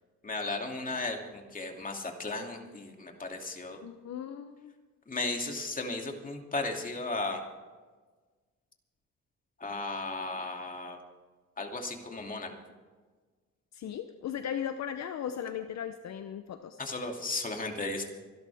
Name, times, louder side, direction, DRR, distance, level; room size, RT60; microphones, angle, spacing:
voice 1, 0.2-3.8 5.1-7.4 9.6-11.0 11.6-12.5 16.8-18.0, left 2 dB, 25° left, 2 dB, 2.7 m, -35 dB
voice 2, 3.8-4.7 13.7-16.8, left 9 dB, 65° left, 8 dB, 0.8 m, -37 dB
25.5 x 12.0 x 3.5 m, 1.4 s
cardioid pair, 90°, 30 cm